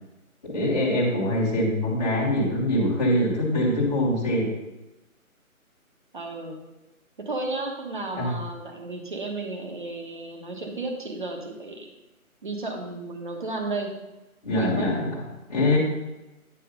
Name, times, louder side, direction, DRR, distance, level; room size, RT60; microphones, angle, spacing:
voice 1, 0.4-4.5 8.1-8.3 14.4-15.2 15.5-15.8, left 1 dB, 30° left, -5 dB, 1.7 m, -23 dB
voice 2, 6.1-6.6 7.2-11.9 12.4-13.9 14.6-14.9, right 2 dB, 35° right, 2 dB, 1.2 m, -33 dB
9.3 x 4.9 x 5.2 m, 1.0 s
figure-of-eight pair, 170°, 43 cm